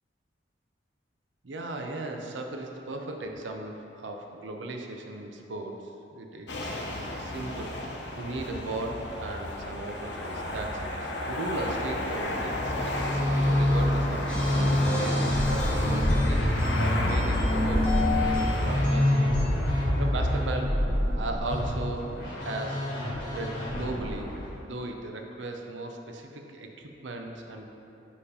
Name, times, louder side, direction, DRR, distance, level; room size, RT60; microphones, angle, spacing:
voice 1, 1.4-19.4 20.0-20.8 21.1-22.1 22.4-22.9 23.3-24.3 24.6-27.6, right 2 dB, 85° right, 3 dB, 0.6 m, -37 dB
sound 1, 6.5-18.9, left 1 dB, 70° left, 0.8 m, -32 dB
Musical instrument, 12.7-24.4, left 1 dB, 50° left, 1.5 m, -27 dB
sound 2, 14.3-19.5, left 1 dB, 5° left, 1.3 m, -31 dB
5.1 x 4.7 x 5.0 m, 2.8 s
head